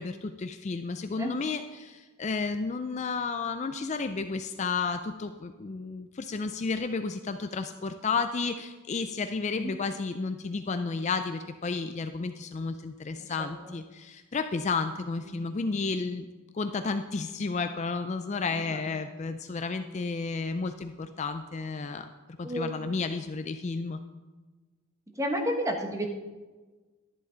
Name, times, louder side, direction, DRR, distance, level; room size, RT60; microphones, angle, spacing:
voice 1, 0.0-16.3 16.5-24.0, left 4 dB, 30° left, 8 dB, 0.3 m, -32 dB
voice 2, 13.2-13.7 15.2-15.5 18.5-18.9 22.4-22.8 25.2-26.1, equal, 15° right, 3 dB, 1.1 m, -32 dB
11.5 x 10.5 x 3.9 m, 1.3 s
head